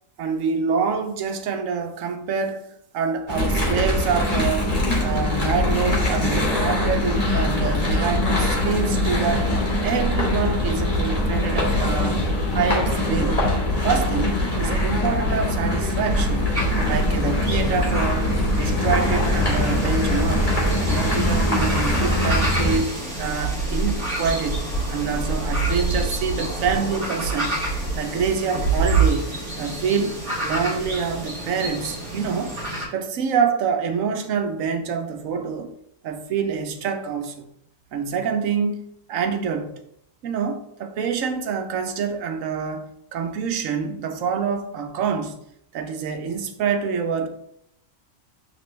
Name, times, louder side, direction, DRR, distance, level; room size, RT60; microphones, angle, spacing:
voice 1, 0.2-2.7 2.9-9.5 9.8-12.2 12.5-13.5 13.8-16.5 16.8-20.5 20.8-27.6 27.9-29.3 29.6-30.2 30.4-32.5 32.9-35.7 36.0-37.5 37.9-38.8 39.1-39.7 40.2-45.4 45.7-47.3, right 6 dB, 80° right, 1.1 m, -26 dB
sound 1, 3.3-22.8, left 1 dB, 30° left, 1.9 m, -22 dB
sound 2, 16.5-32.8, right 3 dB, 35° right, 2.8 m, -27 dB
8.8 x 3.4 x 3.3 m
omnidirectional pair, 1.4 m